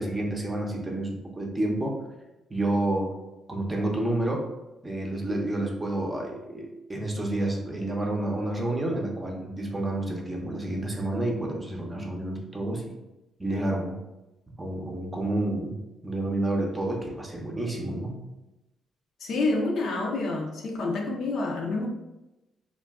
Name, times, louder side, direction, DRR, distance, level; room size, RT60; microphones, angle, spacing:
voice 1, 0.0-2.0 2.5-3.1 3.5-4.5 4.8-12.9 13.4-14.0 14.6-15.8 16.0-18.2, right 1 dB, 20° right, 0.6 m, -29 dB
voice 2, 19.2-21.9, left 3 dB, 65° left, 0.5 m, -28 dB
2.4 x 2.2 x 3.5 m
cardioid pair, 90°, 0 cm